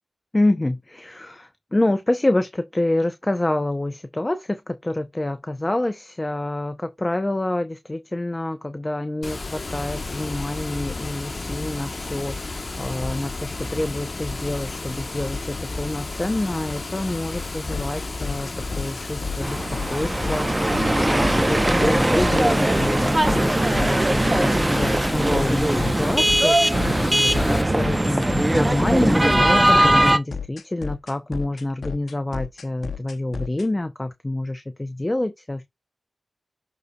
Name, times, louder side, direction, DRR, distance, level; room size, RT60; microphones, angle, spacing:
voice 1, 0.3-18.5 18.8-19.6 19.9-35.6, left 1 dB, 25° left, 0.7 m, -27 dB
Water, 9.2-27.6, left 3 dB, 45° left, 1.1 m, -32 dB
sound 1, 17.7-33.7, left 5 dB, 75° left, 0.7 m, -32 dB
sound 2, 19.4-30.2, right 1 dB, 20° right, 0.7 m, -20 dB
11.5 x 4.1 x 2.3 m
cardioid pair, 60°, 0 cm